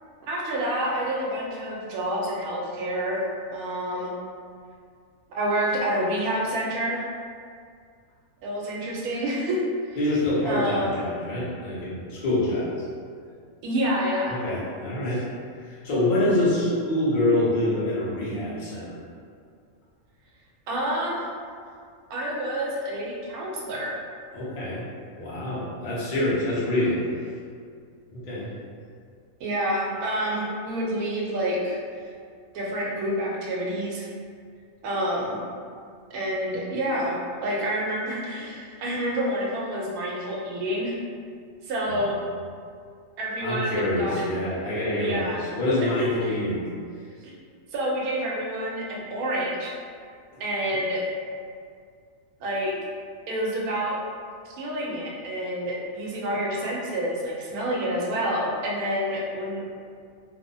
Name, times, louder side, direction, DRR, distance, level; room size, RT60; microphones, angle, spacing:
voice 1, 0.3-3.2 3.5-4.1 5.3-7.0 8.4-9.6 10.4-10.9 13.6-14.4 20.7-21.2 22.1-23.9 29.4-31.8 32.5-34.1 34.8-35.4 36.1-41.0 41.6-42.2 43.2-44.3 45.0-45.4 45.8-46.3 47.2-47.3 47.7-49.8 50.4-51.1 52.4-52.8 53.3-54.0 54.4-59.6, equal, 90° right, -3 dB, 1.1 m, -28 dB
voice 2, 10.0-12.7 14.3-15.3 15.6-19.0 24.3-24.8 25.2-27.0 28.1-28.5 41.9-42.0 43.4-46.6, left 1 dB, 45° left, -8 dB, 0.7 m, -26 dB
2.8 x 2.0 x 2.6 m, 2.2 s
omnidirectional pair, 1.5 m